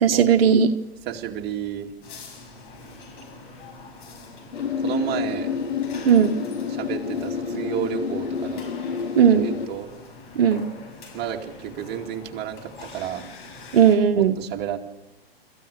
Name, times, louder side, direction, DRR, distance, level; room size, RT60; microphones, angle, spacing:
voice 1, 0.0-0.7 6.1-6.4 9.2-9.5 10.4-10.7 13.7-14.4, right 7 dB, 65° right, 7 dB, 1.3 m, -17 dB
voice 2, 1.1-1.9 4.8-5.5 6.7-8.7 9.3-9.9 11.1-13.3 14.1-14.8, right 10 dB, 30° right, 2 dB, 2.5 m, -31 dB
sound 1, 2.0-14.0, left 3 dB, 55° left, 6.6 m, -44 dB
sound 2, 4.5-9.7, left 6 dB, 80° left, 1.9 m, -29 dB
26.5 x 15.0 x 6.7 m, 0.91 s
hypercardioid pair, 120°, 31 cm